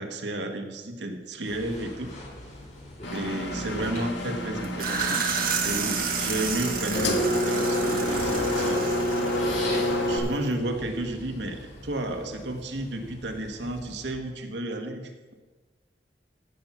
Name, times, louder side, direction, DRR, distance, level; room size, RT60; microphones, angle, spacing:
voice 1, 0.0-2.1 3.1-5.2 5.6-8.8 9.6-15.3, right 1 dB, 90° right, 4 dB, 1.3 m, -32 dB
sound 1, 1.4-14.1, left 1 dB, 45° left, 3.3 m, -41 dB
Engine, 3.0-10.2, equal, 75° left, 1.5 m, -28 dB
sound 2, 4.6-10.2, right 6 dB, 55° right, 1.5 m, -31 dB
15.0 x 5.6 x 6.0 m, 1.3 s
head